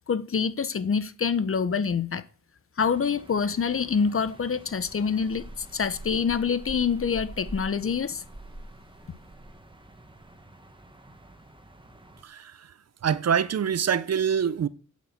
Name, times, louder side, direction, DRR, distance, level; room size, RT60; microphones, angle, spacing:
voice 1, 0.1-2.2 2.8-8.2, left 6 dB, 45° left, 0.9 m, -26 dB
sound 1, 2.8-12.2, right 1 dB, 15° right, 1.7 m, -45 dB
voice 2, 12.2-12.7 13.0-14.7, right 7 dB, 55° right, 0.7 m, -25 dB
8.5 x 8.5 x 8.0 m
wide cardioid pair, 135°, 31 cm